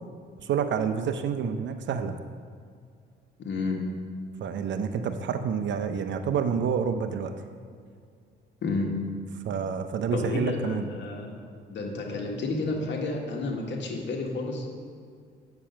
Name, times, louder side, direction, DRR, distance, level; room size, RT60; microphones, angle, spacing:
voice 1, 0.4-2.2 4.4-7.3 9.4-10.9, right 6 dB, 65° right, 9 dB, 0.7 m, -28 dB
voice 2, 3.4-3.8 8.6-8.9 10.1-11.4 11.7-14.7, left 3 dB, 65° left, 0 dB, 1.8 m, -31 dB
8.8 x 7.0 x 5.8 m, 2.2 s
cardioid pair, 90°, 20 cm